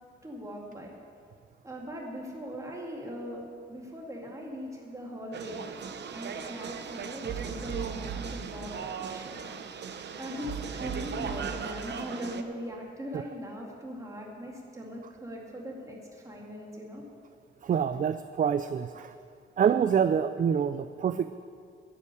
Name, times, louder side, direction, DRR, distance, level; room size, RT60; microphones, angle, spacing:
voice 1, 0.2-0.9 1.6-3.4 3.7-5.6 6.0-8.7 9.1-9.5 9.8-17.0, equal, 15° right, -2 dB, 2.5 m, -40 dB
sound 1, 5.3-12.4, right 6 dB, 60° right, 0.8 m, -37 dB
voice 2, 17.6-19.1 19.6-21.3, right 7 dB, 40° right, 11 dB, 0.4 m, -26 dB
11.0 x 8.4 x 9.8 m, 2.2 s
wide cardioid pair, 155°, 20 cm